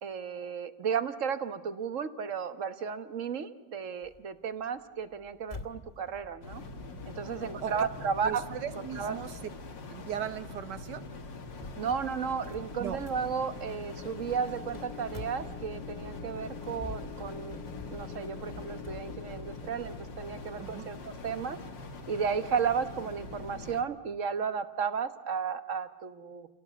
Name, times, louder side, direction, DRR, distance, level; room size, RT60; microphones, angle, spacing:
voice 1, 0.0-6.6 7.1-8.4 8.7-9.2 11.8-17.6 17.9-21.6 22.1-26.5, right 6 dB, 50° right, 11 dB, 1.4 m, -34 dB
sound 1, 4.0-16.0 16.5-19.1, left 2 dB, 25° left, 2.2 m, -49 dB
sound 2, 6.4-23.8, left 3 dB, 85° left, 2.7 m, -44 dB
voice 2, 8.2-9.3 9.9-11.0 12.8-13.0 20.6-20.9, right 9 dB, 75° right, 11 dB, 1.8 m, -37 dB
sound 3, 12.9-20.6, left 9 dB, 60° left, 1.8 m, -47 dB
29.5 x 17.5 x 8.3 m, 1.2 s
omnidirectional pair, 1.9 m